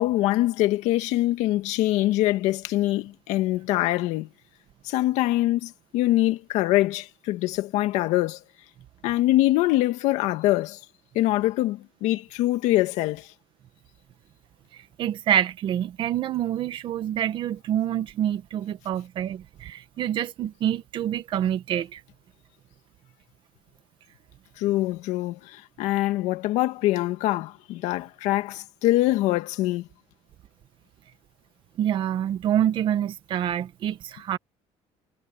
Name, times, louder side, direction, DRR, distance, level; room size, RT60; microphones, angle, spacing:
voice 1, 0.0-4.3 4.8-8.4 9.0-10.8 11.1-13.3 24.6-29.9, left 16 dB, 75° left, 2.0 m, -24 dB
voice 2, 15.0-22.0 31.8-34.4, right 10 dB, 45° right, 1.8 m, -26 dB
cardioid pair, 170°, 12 cm